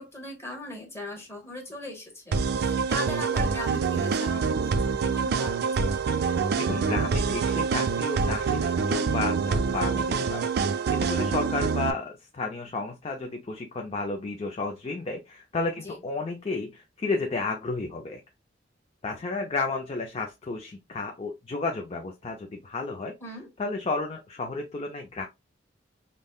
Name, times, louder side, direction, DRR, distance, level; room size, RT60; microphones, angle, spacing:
voice 1, 0.0-6.3 15.8-16.0 23.2-23.5, left 1 dB, 15° left, 1.1 m, -39 dB
sound 1, 2.3-11.9, right 5 dB, 55° right, 0.3 m, -26 dB
voice 2, 6.6-10.5 10.9-18.2 19.0-23.1 23.6-25.3, left 3 dB, 30° left, 0.4 m, -32 dB
5.2 x 2.1 x 2.3 m
head